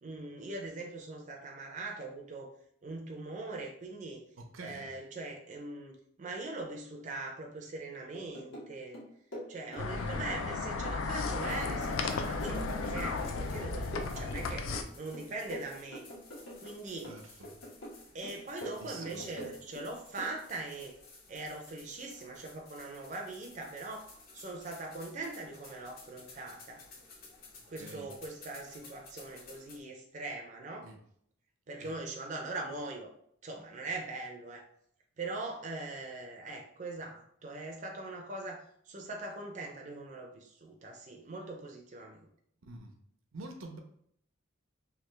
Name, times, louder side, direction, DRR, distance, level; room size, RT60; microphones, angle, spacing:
voice 1, 0.0-2.5 2.8-4.2 4.6-9.0 9.5-16.0 16.6-17.4 18.1-20.9 21.3-26.8 27.7-30.9 31.7-33.1 33.4-34.6 35.2-42.2, right 2 dB, 35° right, 1 dB, 0.4 m, -41 dB
voice 2, 4.4-4.9 9.9-10.1 17.1-17.5 18.8-19.5 27.8-28.1 30.8-31.0 31.8-31.9 42.7-42.9 43.3-43.8, right 2 dB, 80° right, 3 dB, 0.6 m, -47 dB
sound 1, 8.1-8.7 8.9-10.6 10.9-13.7 13.9-14.9 15.1-16.8 17.0-18.0 18.2-19.9 20.2-20.4, equal, 70° left, 1.3 m, -44 dB
sound 2, 9.8-14.8, left 3 dB, 90° left, 0.4 m, -34 dB
sound 3, 11.4-29.8, left 3 dB, 45° left, 0.7 m, -55 dB
3.3 x 2.3 x 3.1 m, 0.67 s
head